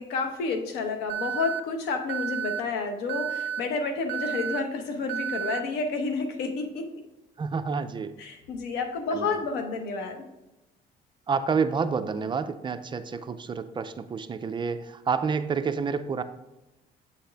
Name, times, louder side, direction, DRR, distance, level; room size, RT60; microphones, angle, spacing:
voice 1, 0.0-6.9 8.2-10.2, left 4 dB, 90° left, 5 dB, 1.0 m, -30 dB
Alarm, 1.1-1.6 2.1-2.6 3.1-3.6 4.1-4.6 5.1-5.6, right 9 dB, 85° right, 0.4 m, -31 dB
voice 2, 7.4-8.1 9.1-9.3 11.3-16.2, right 5 dB, 30° right, 10 dB, 0.4 m, -29 dB
7.8 x 4.2 x 3.4 m, 1.0 s
cardioid pair, 110°, 17 cm